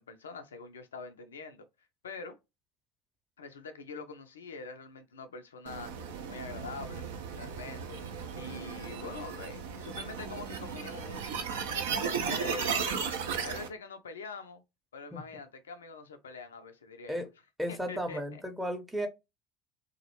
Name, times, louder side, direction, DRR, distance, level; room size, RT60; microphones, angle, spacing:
voice 1, 0.0-1.7 2.0-2.4 3.4-7.1 7.4-8.0 8.4-13.1 13.4-14.6 14.9-17.3 17.7-18.4, left 4 dB, 85° left, 0.3 m, -44 dB
sound 1, 5.7-13.7, right 6 dB, 75° right, 0.4 m, -35 dB
voice 2, 17.6-19.1, equal, 5° right, 0.6 m, -34 dB
2.3 x 2.0 x 2.8 m
hypercardioid pair, 75°, 0 cm